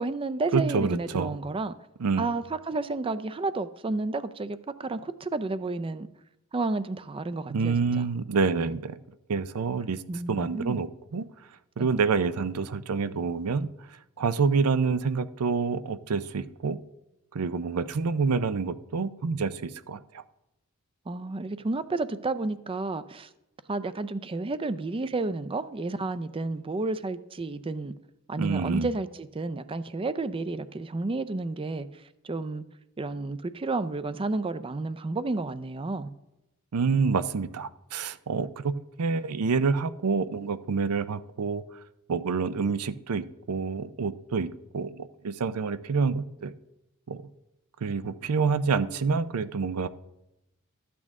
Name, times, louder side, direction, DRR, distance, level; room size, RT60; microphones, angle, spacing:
voice 1, 0.0-1.7 2.2-6.1 6.5-8.1 8.6-8.7 10.1-10.8 11.8-11.9 21.1-23.3 23.7-27.9 28.3-31.9 32.2-32.6 33.0-36.1, right 3 dB, 25° right, 0.4 m, -31 dB
voice 2, 0.5-1.3 2.0-2.3 7.5-9.0 9.3-10.0 10.3-11.3 11.8-13.7 14.2-16.8 17.3-20.2 28.4-28.9 36.7-38.7 39.0-41.6 42.1-46.5 47.1-47.2 47.8-49.9, right 5 dB, 85° right, 0.5 m, -27 dB
13.0 x 8.4 x 3.6 m
head